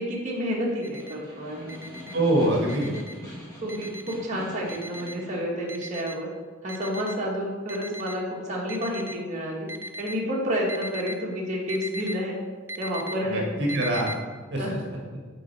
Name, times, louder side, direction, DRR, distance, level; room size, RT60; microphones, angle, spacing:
voice 1, 0.0-1.7 3.6-6.3 6.6-9.7 10.0-12.4 12.8-13.5 14.6-14.9, equal, 35° right, -4 dB, 1.5 m, -30 dB
Snare drum, 0.7-5.6, left 1 dB, 20° left, 1.5 m, -43 dB
Alarm, 0.8-1.1 1.7-2.1 2.7-3.1 3.7-4.1 4.7-5.1 5.7-6.2 6.7-7.2 7.7-8.2 8.7-9.2 9.7-10.2 10.7-11.1 11.7-12.1 12.7-13.1 13.7-14.1, equal, 10° right, 0.4 m, -37 dB
voice 2, 2.1-3.0 13.2-14.1 14.5-14.8, right 1 dB, 60° right, -2 dB, 1.4 m, -24 dB
9.0 x 4.0 x 4.3 m, 1.5 s
head